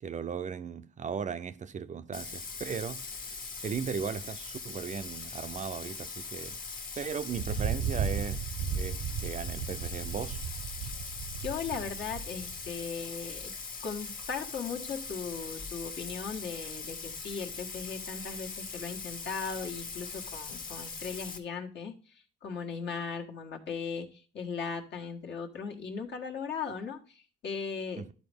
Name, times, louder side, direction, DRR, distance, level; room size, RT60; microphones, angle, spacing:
voice 1, 0.0-6.6 7.0-8.4 8.7-10.4 27.9-28.1, right 6 dB, 40° right, 0.5 m, -37 dB
Bathtub (filling or washing), 2.1-21.4, left 4 dB, 45° left, 1.3 m, -41 dB
Thunder, 7.3-12.8, right 7 dB, 80° right, 0.8 m, -35 dB
voice 2, 11.4-13.5 13.8-28.1, left 5 dB, 65° left, 1.5 m, -38 dB
12.0 x 4.1 x 3.4 m
cardioid pair, 90°, 20 cm